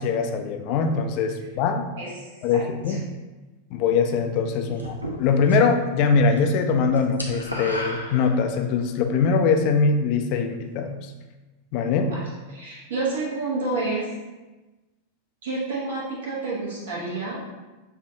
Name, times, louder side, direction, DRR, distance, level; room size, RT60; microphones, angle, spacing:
voice 1, 0.0-1.9 2.4-3.0 3.7-11.0 11.7-12.1, left 5 dB, 45° left, 5 dB, 0.4 m, -22 dB
voice 2, 2.0-2.3 2.5-2.6 2.9-3.0 12.0-12.2 12.5-14.1 15.4-17.4, right 3 dB, 60° right, -5 dB, 1.1 m, -29 dB
sound 1, 4.8-5.8 6.1-8.8, equal, 90° right, 0.6 m, -34 dB
6.4 x 2.5 x 2.7 m, 1.2 s
figure-of-eight pair, 90°, 0 cm